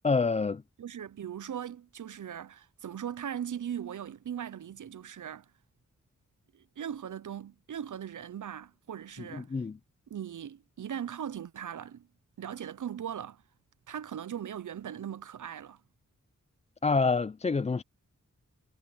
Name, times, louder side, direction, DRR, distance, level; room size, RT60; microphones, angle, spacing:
voice 1, 0.0-0.6 9.3-9.8 16.8-17.8, left 4 dB, 25° left, 0.3 m, -27 dB
voice 2, 0.8-5.5 6.5-9.5 10.1-12.1 12.4-13.4 13.9-15.8, right 9 dB, 80° right, 0.6 m, -39 dB
wide cardioid pair, 70°, 31 cm